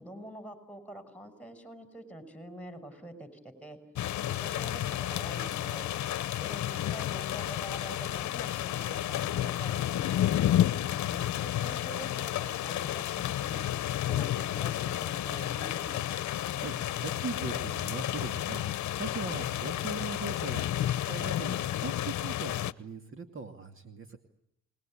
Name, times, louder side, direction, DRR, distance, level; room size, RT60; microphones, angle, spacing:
voice 1, 0.0-3.8 4.1-5.9 6.4-10.5 11.1-13.6 14.0-16.3, right 1 dB, 5° left, 9 dB, 5.7 m, -46 dB
sound 1, 3.9-22.7, left 12 dB, 70° left, 1.0 m, -31 dB
voice 2, 16.5-24.2, right 4 dB, 40° right, 7 dB, 2.5 m, -40 dB
28.0 x 21.0 x 8.8 m, 0.76 s
cardioid pair, 90°, 30 cm